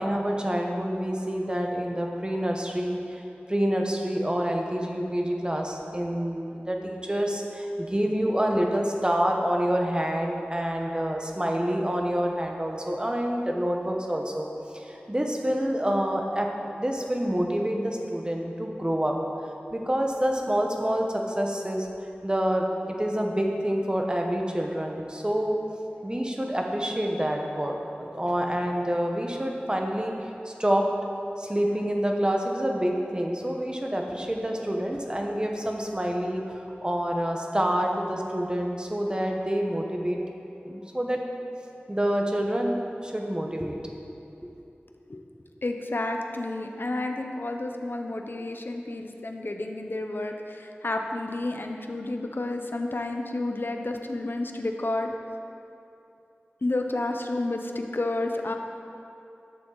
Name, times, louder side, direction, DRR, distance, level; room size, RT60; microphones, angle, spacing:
voice 1, 0.0-3.2 3.5-14.5 14.7-19.2 19.7-21.9 22.2-25.6 26.0-30.1 30.4-30.9 31.4-40.2 40.6-41.2 41.9-43.8, equal, 20° right, 1 dB, 1.0 m, -27 dB
voice 2, 45.6-55.1 56.6-58.5, left 2 dB, 60° left, 4 dB, 0.7 m, -30 dB
11.5 x 6.8 x 3.9 m, 2.7 s
wide cardioid pair, 60°, 4 cm